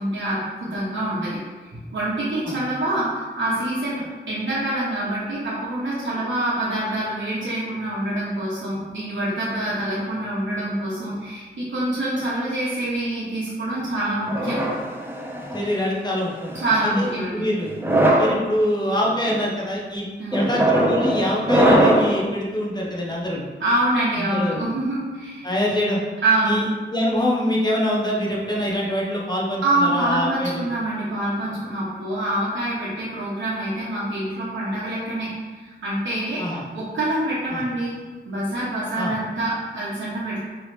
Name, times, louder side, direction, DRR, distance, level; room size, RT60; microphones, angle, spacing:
voice 1, 0.0-14.6 16.5-17.4 20.2-20.4 23.6-25.5 26.2-26.6 29.6-35.3 35.5-37.9 38.2-40.4, right 1 dB, 90° right, -9 dB, 1.1 m, -25 dB
sound 1, 14.3-15.7 16.5-16.9 17.7-18.4 19.0-19.4 20.3-22.2, right 1 dB, 10° right, 0.6 m, -20 dB
voice 2, 15.5-16.5 16.8-17.7 18.2-23.5 24.2-24.7 25.4-26.0 26.4-30.7 36.4-36.6 37.5-37.6 38.9-39.1, equal, 20° left, -4 dB, 1.0 m, -25 dB
4.8 x 3.1 x 3.3 m, 1.3 s
wide cardioid pair, 100°, 19 cm